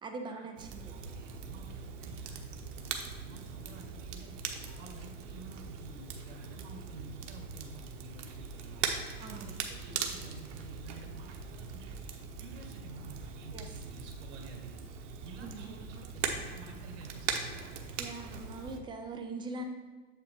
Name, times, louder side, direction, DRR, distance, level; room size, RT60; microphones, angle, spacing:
voice 1, 0.0-0.9 9.2-9.4 13.5-13.7 15.4-15.8 18.0-19.6, right 3 dB, 15° right, 3 dB, 0.4 m, -42 dB
Crackle, 0.6-18.8, right 6 dB, 80° right, 1.1 m, -40 dB
voice 2, 0.9-2.4 2.8-4.4 4.8-8.9 9.3-11.9 12.3-14.8 15.2-17.8, right 3 dB, 65° right, 1 dB, 1.9 m, -50 dB
7.7 x 5.6 x 3.6 m, 1.4 s
supercardioid pair, 145°, 36 cm